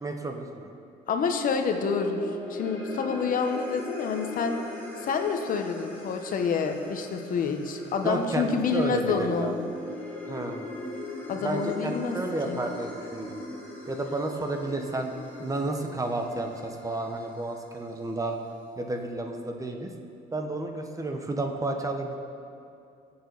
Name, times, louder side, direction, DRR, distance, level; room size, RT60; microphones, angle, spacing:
voice 1, 0.0-0.7 8.0-9.5 10.3-10.7 11.4-13.4 13.9-15.1 15.4-18.4 18.8-19.9 20.3-22.2, right 2 dB, 20° right, 4 dB, 1.0 m, -31 dB
voice 2, 1.1-4.6 5.0-9.5 11.3-12.2 12.5-12.6, left 5 dB, 55° left, 5 dB, 1.0 m, -28 dB
sound 1, 1.4-17.9, left 2 dB, 10° left, 3.1 m, -40 dB
19.0 x 7.1 x 4.0 m, 2.5 s
cardioid pair, 110°, 17 cm